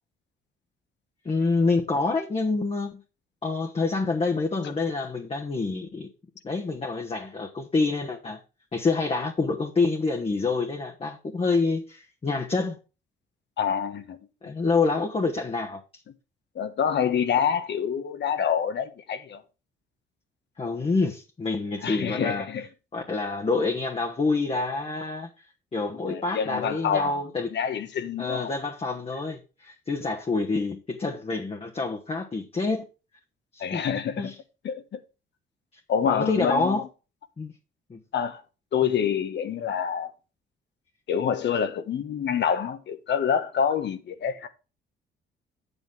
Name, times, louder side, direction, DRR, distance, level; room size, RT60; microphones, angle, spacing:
voice 1, 1.2-3.0 3.4-6.1 6.4-8.4 8.7-12.7 14.4-15.8 20.6-22.5 22.9-25.3 25.7-27.5 28.2-32.8 33.5-33.8 34.2-34.3 36.0-36.8 37.4-37.5 37.9-38.0, left 3 dB, 30° left, 1.3 m, -27 dB
voice 2, 13.6-14.2 16.5-19.4 21.8-22.7 26.0-27.2 27.5-28.5 33.6-34.3 34.6-35.0 35.9-36.8 38.1-38.4 38.7-40.1 41.1-44.5, left 7 dB, 65° left, 1.3 m, -27 dB
8.1 x 7.9 x 3.6 m
cardioid pair, 90°, 20 cm